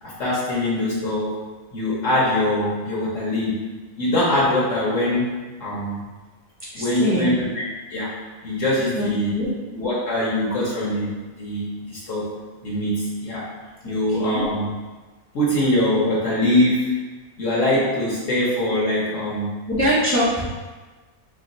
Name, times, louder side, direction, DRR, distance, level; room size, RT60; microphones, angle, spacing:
voice 1, 0.0-1.4 1.7-3.6 4.0-6.0 6.7-7.6 7.9-8.1 8.4-9.3 9.7-12.3 12.6-13.4 13.8-14.7 15.3-17.0 17.4-19.5, left 1 dB, 65° left, -6 dB, 1.2 m, -23 dB
voice 2, 6.7-7.3 9.0-9.5 13.8-14.5 19.7-20.4, equal, 15° left, -9 dB, 0.6 m, -23 dB
2.9 x 2.9 x 4.0 m, 1.3 s
omnidirectional pair, 1.5 m